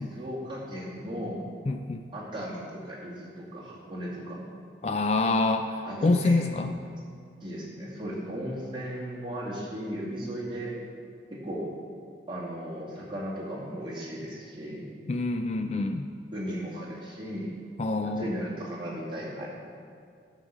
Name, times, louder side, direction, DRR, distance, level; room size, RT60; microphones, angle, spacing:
voice 1, 0.0-1.5 2.1-4.4 5.8-6.7 7.4-10.7 11.3-11.7 12.3-14.9 16.3-17.6 18.0-19.5, equal, 30° right, -6 dB, 2.2 m, -36 dB
voice 2, 1.7-2.0 4.8-6.7 15.1-16.1 17.8-18.3, left 3 dB, 35° left, 7 dB, 0.4 m, -26 dB
9.6 x 6.8 x 6.0 m, 2.3 s
head